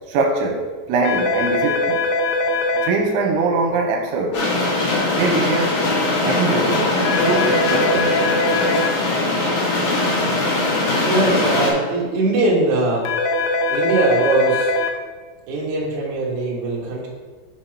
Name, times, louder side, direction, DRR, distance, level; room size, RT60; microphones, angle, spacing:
voice 1, 0.1-2.1 2.8-4.4 5.2-5.8 6.2-6.9 7.2-8.2, right 3 dB, 80° right, 2 dB, 3.0 m, -22 dB
sound 1, 1.1-2.9 7.1-8.9 13.1-14.9, left 2 dB, 85° left, 2.9 m, -21 dB
sound 2, 4.3-11.7, left 2 dB, 60° left, 3.6 m, -20 dB
voice 2, 11.1-13.1 13.7-14.7 15.5-17.1, right 2 dB, 55° right, -4 dB, 2.3 m, -21 dB
8.3 x 6.9 x 3.0 m, 1.4 s
omnidirectional pair, 5.2 m